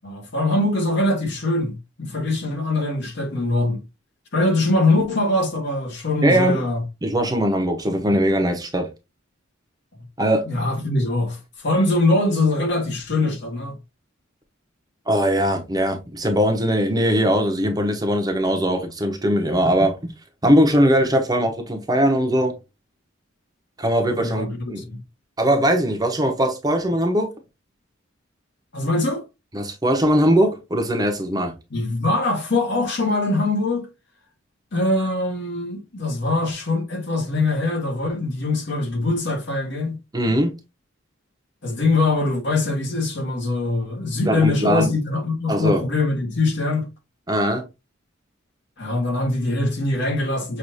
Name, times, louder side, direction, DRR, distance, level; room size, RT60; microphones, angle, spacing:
voice 1, 0.0-3.8 4.3-6.8 10.5-13.8 24.2-25.0 28.7-29.2 31.7-33.9 34.7-40.0 41.6-46.9 48.8-50.6, left 2 dB, 60° left, 1.5 m, -22 dB
voice 2, 6.2-6.6 7.0-8.9 10.2-10.5 15.1-20.1 20.4-22.5 23.8-24.8 25.4-27.3 29.5-31.5 40.1-40.5 44.2-44.9 45.5-45.8 47.3-47.6, equal, 20° right, 0.9 m, -20 dB
6.3 x 2.6 x 2.6 m
head